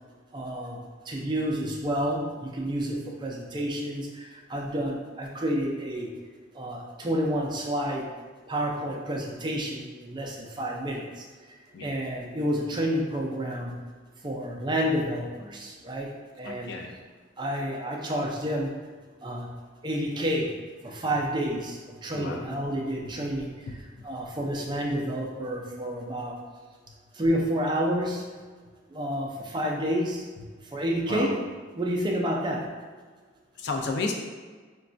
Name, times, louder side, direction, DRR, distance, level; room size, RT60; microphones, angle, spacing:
voice 1, 0.3-0.8 1.1-6.1 6.6-8.1 8.5-11.1 11.8-13.7 14.2-16.1 16.4-16.7 17.4-18.8 19.2-19.5 19.8-20.5 20.8-23.5 24.0-26.4 27.2-28.2 28.9-30.2 30.7-31.4 31.8-32.6, equal, 25° right, -1 dB, 0.4 m, -29 dB
voice 2, 16.4-16.9 22.1-22.5 23.9-24.0 31.1-31.4 33.6-34.1, left 3 dB, 60° left, 2 dB, 0.4 m, -32 dB
4.0 x 2.2 x 2.5 m, 1.5 s
head